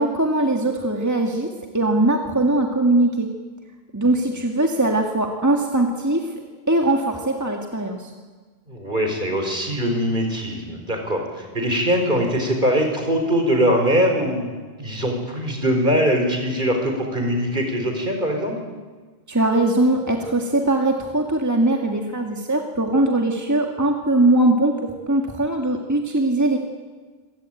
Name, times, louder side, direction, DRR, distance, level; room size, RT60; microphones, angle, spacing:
voice 1, 0.0-1.5 1.7-3.3 3.9-6.3 6.7-8.1 19.3-26.6, right 2 dB, 15° right, 2 dB, 2.1 m, -20 dB
voice 2, 8.7-18.6, equal, 50° right, 3 dB, 4.7 m, -22 dB
26.0 x 17.5 x 9.0 m, 1.4 s
omnidirectional pair, 1.1 m